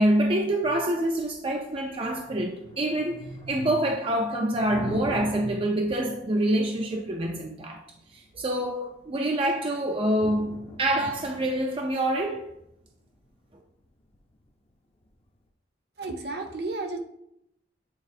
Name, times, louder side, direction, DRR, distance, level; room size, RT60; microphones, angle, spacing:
voice 1, 0.0-7.8 8.1-12.5, right 1 dB, 30° right, 0.4 m, -26 dB
Thunder, 1.4-15.4, left 1 dB, 30° left, 0.6 m, -45 dB
voice 2, 16.0-17.0, right 2 dB, 60° right, 0.9 m, -32 dB
8.6 x 4.1 x 2.7 m
head